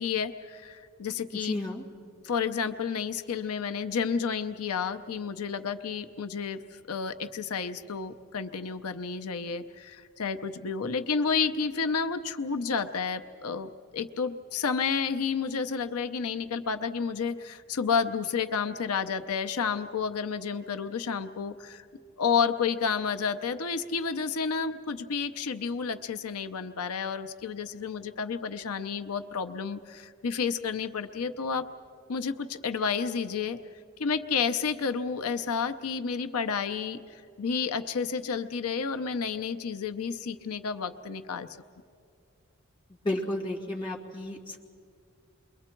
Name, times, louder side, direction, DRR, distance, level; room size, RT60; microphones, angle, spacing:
voice 1, 0.0-1.5 2.2-21.8 22.2-31.7 32.1-33.6 34.0-41.5, left 6 dB, 90° left, 8 dB, 0.7 m, -31 dB
voice 2, 1.3-1.8 42.9-44.6, left 1 dB, 20° left, -2 dB, 2.2 m, -33 dB
29.0 x 22.5 x 4.5 m, 2.4 s
head